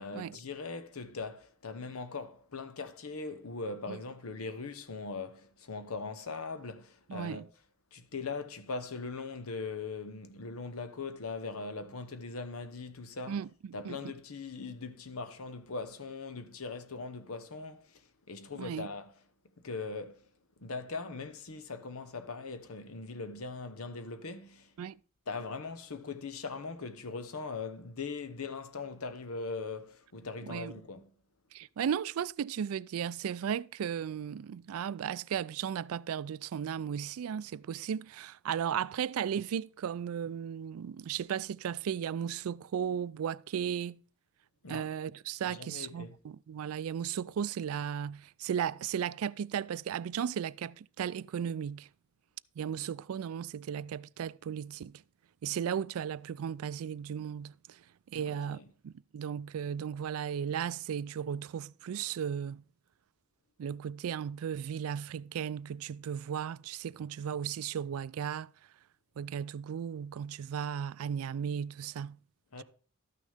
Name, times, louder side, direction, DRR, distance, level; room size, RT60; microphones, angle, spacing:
voice 1, 0.0-7.5 7.9-13.4 13.7-19.1 19.6-20.2 20.6-24.7 25.3-31.1 44.6-44.9 45.4-46.2 58.1-58.7 72.5-72.6, left 4 dB, 80° left, 0.9 m, -40 dB
voice 2, 7.1-7.4 13.3-13.5 13.8-14.0 18.6-18.9 24.8-25.0 30.4-30.7 31.5-44.0 44.7-51.9 52.6-54.9 55.4-57.5 58.1-62.6 63.6-68.5 69.2-72.2, right 8 dB, 75° right, 0.3 m, -35 dB
13.0 x 6.4 x 3.4 m
head